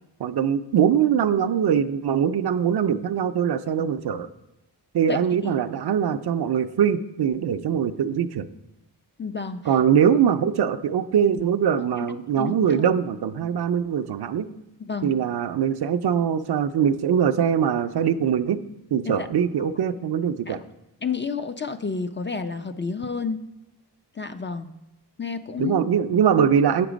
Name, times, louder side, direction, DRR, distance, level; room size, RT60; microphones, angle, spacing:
voice 1, 0.2-4.3 4.9-8.5 9.7-14.5 15.0-18.6 18.9-20.6 25.6-26.9, right 8 dB, 65° right, 11 dB, 0.5 m, -22 dB
voice 2, 5.1-5.6 9.2-9.6 12.0-12.6 14.8-15.1 19.0-19.3 20.5-20.6 21.0-23.4 24.2-24.7 25.2-25.8, left 5 dB, 30° left, 9 dB, 0.4 m, -30 dB
8.0 x 6.0 x 5.0 m, 0.91 s
wide cardioid pair, 80°, 42 cm